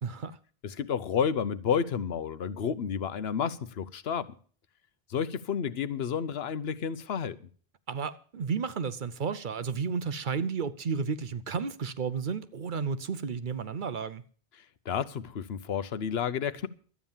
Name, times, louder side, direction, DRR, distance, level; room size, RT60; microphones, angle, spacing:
voice 1, 0.0-0.4 7.9-14.2, right 5 dB, 55° right, 0.8 m, -32 dB
voice 2, 0.6-4.3 5.1-7.4 14.8-16.7, left 7 dB, 80° left, 1.0 m, -30 dB
12.5 x 9.3 x 7.2 m
omnidirectional pair, 1.0 m